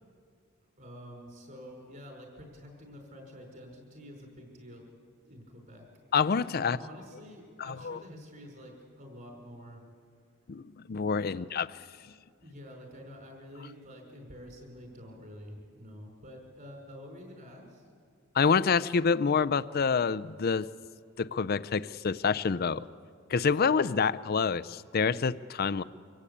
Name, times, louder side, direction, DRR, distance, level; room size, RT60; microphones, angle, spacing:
voice 1, 0.8-4.8 5.3-5.8 6.6-9.8 11.3-11.6 12.4-17.8, equal, 40° right, 2 dB, 5.5 m, -48 dB
voice 2, 6.1-6.8 7.6-8.0 10.5-11.7 18.3-20.7 21.2-22.8 23.3-25.8, left 5 dB, 45° left, 17 dB, 0.5 m, -27 dB
25.0 x 17.0 x 8.6 m, 2.1 s
head